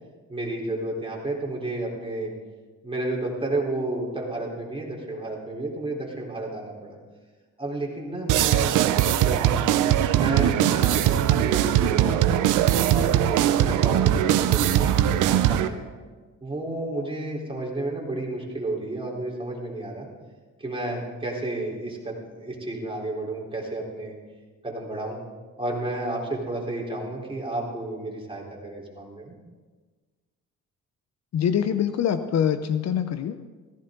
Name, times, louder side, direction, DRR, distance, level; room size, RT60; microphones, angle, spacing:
voice 1, 0.3-2.3 2.8-7.0 7.6-9.7 10.1-12.4 12.9-15.8 16.4-20.1 20.6-24.1 24.6-25.2 25.6-29.3, right 2 dB, 20° right, -3 dB, 4.0 m, -32 dB
sound 1, 8.3-15.7, right 11 dB, 90° right, 0.7 m, -21 dB
voice 2, 31.3-33.5, left 8 dB, 60° left, 11 dB, 0.8 m, -24 dB
17.0 x 14.5 x 3.9 m, 1.4 s
cardioid pair, 90°, 30 cm